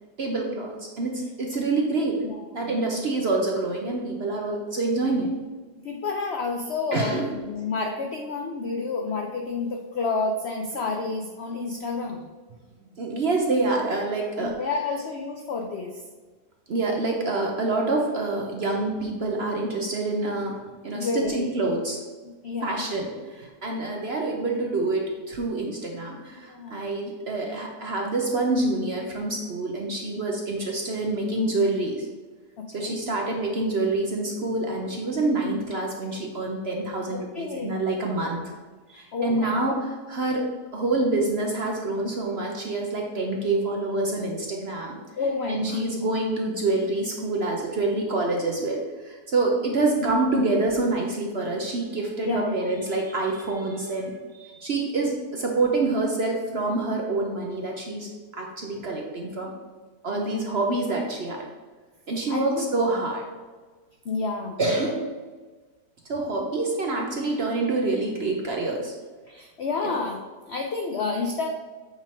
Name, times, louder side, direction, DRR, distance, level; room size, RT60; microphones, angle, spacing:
voice 1, 0.2-2.2 2.5-5.3 6.9-7.3 13.0-14.5 16.7-20.6 20.8-22.0 22.6-32.1 32.7-38.4 38.9-45.0 45.5-59.5 60.0-61.5 62.1-63.2 64.6-65.1 66.1-68.9 69.8-69.9, right 2 dB, 50° right, 0 dB, 0.7 m, -27 dB
voice 2, 2.2-2.7 5.8-12.3 14.4-16.0 20.9-21.6 22.4-22.9 26.4-26.8 32.6-33.0 37.1-37.8 39.1-39.7 45.2-45.8 50.0-50.2 52.2-52.6 60.1-60.4 62.3-62.7 64.0-64.6 69.3-70.2 70.5-71.5, left 4 dB, 80° left, 2 dB, 0.5 m, -30 dB
8.2 x 3.7 x 4.3 m, 1.4 s
omnidirectional pair, 1.9 m